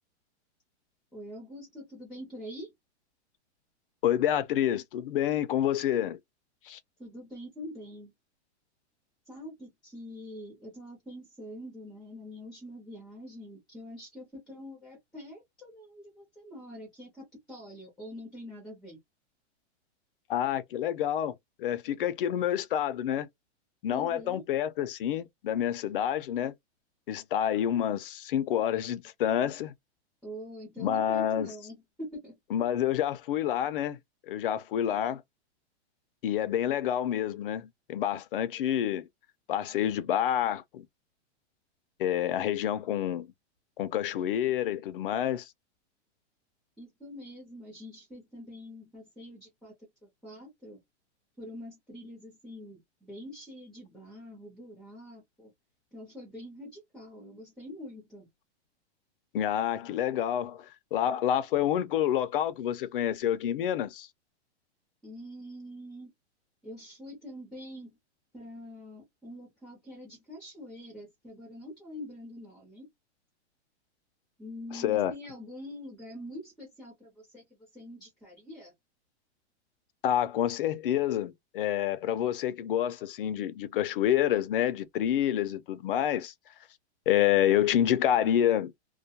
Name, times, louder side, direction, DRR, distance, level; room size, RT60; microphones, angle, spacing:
voice 1, 1.1-2.7 7.0-8.1 9.3-19.0 23.9-24.4 30.2-32.6 46.8-49.7 50.0-50.8 51.4-55.5 55.9-58.3 65.0-66.1 66.6-68.0 68.3-72.9 74.4-77.4 77.7-78.7, left 1 dB, ahead, 0.6 m, -45 dB
voice 2, 4.0-6.2 6.6-6.8 20.3-23.3 23.8-26.5 27.1-29.7 30.8-31.5 32.5-34.0 34.3-35.2 36.2-39.1 39.5-40.9 42.0-43.3 43.8-45.5 59.3-64.1 74.7-75.1 80.0-86.3 87.1-88.7, left 10 dB, 50° left, 0.4 m, -28 dB
2.2 x 2.2 x 2.6 m
supercardioid pair, 160°, 35 cm